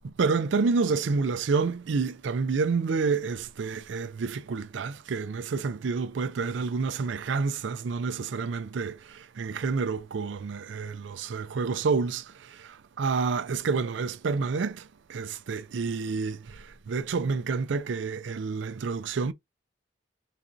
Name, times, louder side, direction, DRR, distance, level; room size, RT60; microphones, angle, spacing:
voice 1, 0.0-14.8 15.1-19.3, right 4 dB, 75° right, 0.4 m, -29 dB
4.0 x 2.5 x 2.2 m
head